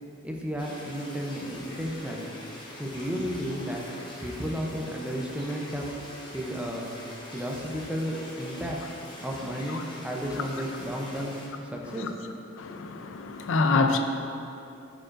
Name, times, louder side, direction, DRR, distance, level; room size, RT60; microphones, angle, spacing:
voice 1, 0.2-2.2 2.8-3.8 4.2-5.9 6.3-6.9 7.3-8.8 9.2-11.4 11.7-12.1, equal, 5° right, -1 dB, 0.6 m, -33 dB
sound 1, 0.6-11.5, left 1 dB, 20° left, 1.0 m, -44 dB
voice 2, 12.6-14.0, left 3 dB, 65° left, 6 dB, 0.4 m, -26 dB
8.5 x 5.0 x 2.5 m, 2.7 s
head